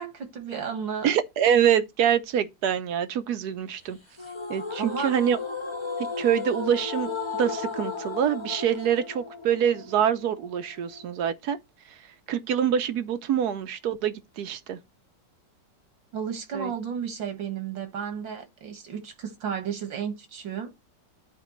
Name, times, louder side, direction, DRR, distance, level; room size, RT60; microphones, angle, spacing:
voice 1, 0.0-1.1 4.8-5.1 16.1-20.7, right 7 dB, 85° right, 2.3 m, -33 dB
voice 2, 1.0-4.0 4.5-5.4 6.2-11.6 12.3-14.8 16.5-16.7, right 9 dB, 65° right, 1.2 m, -25 dB
sound 1, 4.2-11.2, left 4 dB, 20° left, 1.0 m, -35 dB
12.5 x 4.3 x 3.1 m
omnidirectional pair, 2.0 m